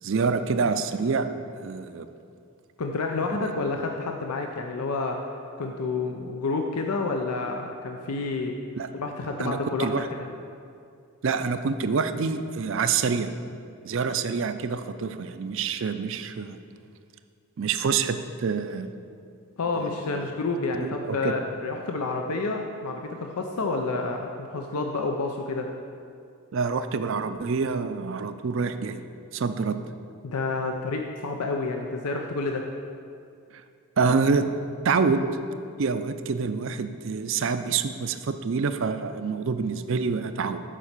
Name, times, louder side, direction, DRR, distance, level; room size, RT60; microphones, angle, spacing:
voice 1, 0.0-1.3 1.6-2.1 3.4-3.6 8.8-8.9 9.4-10.1 11.2-13.3 13.8-16.6 17.6-18.9 19.8-20.2 20.8-21.3 26.5-29.0 29.3-29.8 33.5-33.6 34.0-34.5 34.8-35.2 35.8-40.6, right 5 dB, 55° right, 10 dB, 0.4 m, -27 dB
voice 2, 2.8-5.2 5.6-8.6 8.9-9.9 10.2-10.3 19.6-25.7 30.2-32.7, left 3 dB, 90° left, 3 dB, 0.6 m, -29 dB
7.4 x 5.3 x 6.6 m, 2.3 s
head